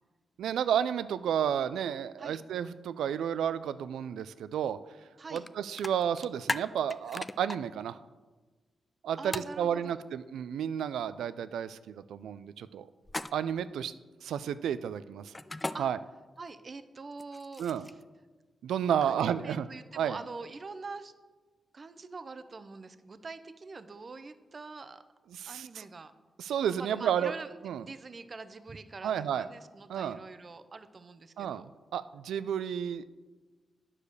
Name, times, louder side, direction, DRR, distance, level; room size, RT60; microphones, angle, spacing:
voice 1, 0.4-4.8 5.3-8.0 9.0-12.9 13.3-13.9 14.2-15.3 15.8-16.0 17.6-17.9 18.6-19.7 20.0-20.2 25.3-25.8 26.4-27.3 27.6-27.8 29.0-29.5 29.9-30.2 31.4-33.0, right 9 dB, 90° right, 14 dB, 0.3 m, -31 dB
sound 1, 5.4-5.5 5.8-7.6 9.3-9.5 13.0-13.6 15.3-15.8 17.1-18.0, left 2 dB, 20° left, 0.4 m, -36 dB
voice 2, 9.2-10.0 15.7-15.9 16.4-17.9 19.0-21.1 21.7-25.0 25.4-26.1 26.8-27.5 27.8-31.7, right 4 dB, 45° right, 12 dB, 0.6 m, -44 dB
9.7 x 4.9 x 6.6 m, 1.3 s
cardioid pair, 60°, 0 cm